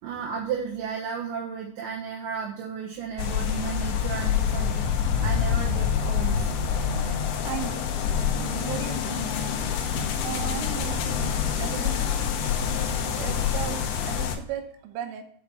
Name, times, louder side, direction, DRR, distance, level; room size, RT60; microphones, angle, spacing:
voice 1, 0.0-6.5 13.2-13.4, right 6 dB, 75° right, -5 dB, 3.4 m, -34 dB
sound 1, 3.2-14.4, left 8 dB, 75° left, 2.3 m, -27 dB
sound 2, 5.4-13.9, right 1 dB, 15° right, 2.8 m, -38 dB
voice 2, 7.5-7.9 8.6-9.4 10.2-12.0 13.2-15.2, right 10 dB, 90° right, 6 dB, 3.6 m, -36 dB
7.2 x 5.9 x 6.0 m, 0.63 s
omnidirectional pair, 5.7 m